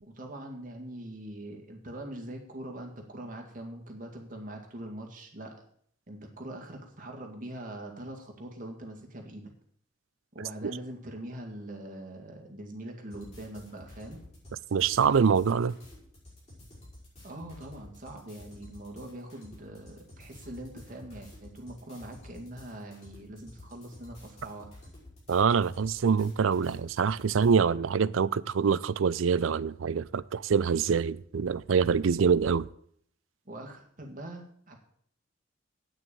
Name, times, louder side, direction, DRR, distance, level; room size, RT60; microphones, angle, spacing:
voice 1, 0.0-5.5 6.1-9.5 10.3-14.2 17.2-24.7 33.5-34.7, right 1 dB, 40° right, 2.0 m, -42 dB
sound 1, 13.1-27.5, left 1 dB, 35° left, 5.5 m, -51 dB
voice 2, 14.7-15.7 25.3-32.7, right 6 dB, 85° right, 0.4 m, -25 dB
9.2 x 6.3 x 8.5 m
head